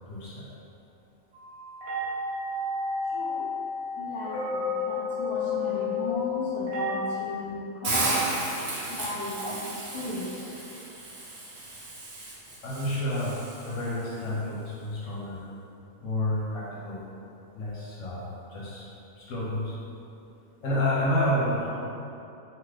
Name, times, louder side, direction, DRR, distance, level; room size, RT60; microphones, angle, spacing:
voice 1, 0.1-0.5 12.6-13.4 13.7-15.4 16.0-17.0 17.6-18.8 19.2-19.8 20.6-21.7, left 1 dB, 70° left, -7 dB, 0.9 m, -29 dB
sound 1, 1.3-7.0, left 4 dB, 80° right, 1.2 m, -31 dB
voice 2, 3.1-3.5 3.9-8.3 8.9-10.3, equal, 10° left, -11 dB, 0.6 m, -35 dB
Hiss, 7.8-13.9, right 2 dB, 65° right, 1.0 m, -34 dB
2.7 x 2.4 x 3.2 m, 2.8 s
omnidirectional pair, 1.5 m